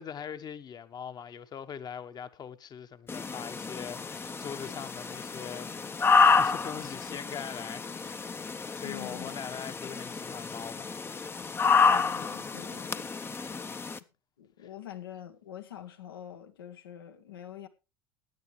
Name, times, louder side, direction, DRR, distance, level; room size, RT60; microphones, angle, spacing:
voice 1, 0.0-5.7 6.0-8.2 8.7-10.9 13.5-13.7 14.6-14.7, left 8 dB, 35° left, 1.1 m, -42 dB
sound 1, 3.1-14.0, left 5 dB, 20° left, 0.7 m, -29 dB
voice 2, 8.8-9.3 11.9-13.1 14.4-17.7, left 11 dB, 80° left, 1.3 m, -45 dB
16.0 x 9.5 x 3.2 m
hypercardioid pair, 75°, 12 cm